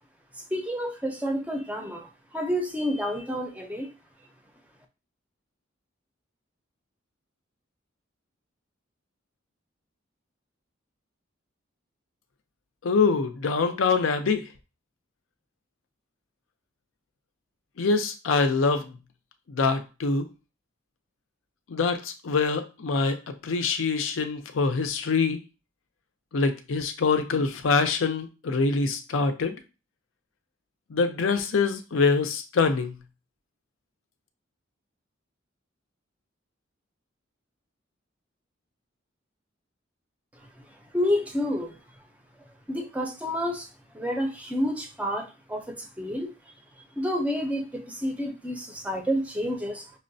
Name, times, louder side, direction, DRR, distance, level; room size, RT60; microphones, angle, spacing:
voice 1, 0.5-3.9 40.6-40.7 40.9-41.8 42.7-43.7 43.9-46.3 46.8-49.9, equal, 5° right, 4 dB, 0.5 m, -29 dB
voice 2, 12.8-14.5 17.8-19.0 19.5-20.3 21.7-25.4 26.3-29.5 30.9-33.0, left 4 dB, 85° left, 7 dB, 0.5 m, -25 dB
5.4 x 2.1 x 2.6 m, 0.30 s
head